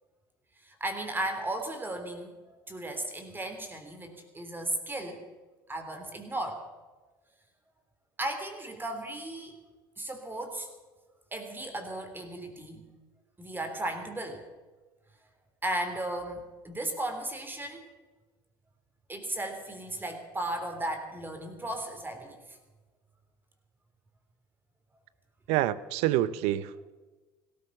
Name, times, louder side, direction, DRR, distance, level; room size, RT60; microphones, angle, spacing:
voice 1, 0.6-5.2 5.7-6.6 8.2-9.5 10.0-10.7 11.3-12.8 13.4-14.4 15.6-17.8 19.1-22.4, right 1 dB, 15° right, 5 dB, 3.3 m, -35 dB
voice 2, 25.5-26.9, right 14 dB, 65° right, 17 dB, 0.7 m, -27 dB
17.0 x 13.5 x 6.0 m, 1.3 s
hypercardioid pair, 75°, 12 cm